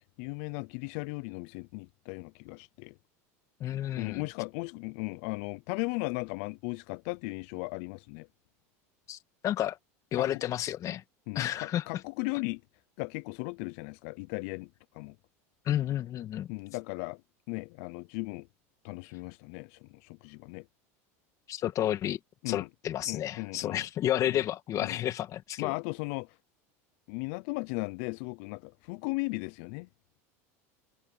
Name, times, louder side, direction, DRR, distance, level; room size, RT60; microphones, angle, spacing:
voice 1, 0.0-2.9 4.0-8.3 10.1-10.4 11.3-12.6 13.0-14.7 14.9-15.1 16.5-17.2 17.5-18.5 18.8-20.6 22.4-22.7 23.1-23.8 24.3-24.4 24.8-25.0 25.6-26.3 27.1-29.9, left 28 dB, 65° left, 0.5 m, -36 dB
voice 2, 3.6-4.3 9.1-9.2 9.4-9.8 10.1-11.0 11.4-11.8 15.7-16.5 21.5-22.2 22.5-25.7, left 12 dB, 45° left, 1.9 m, -31 dB
supercardioid pair, 110°, 8 cm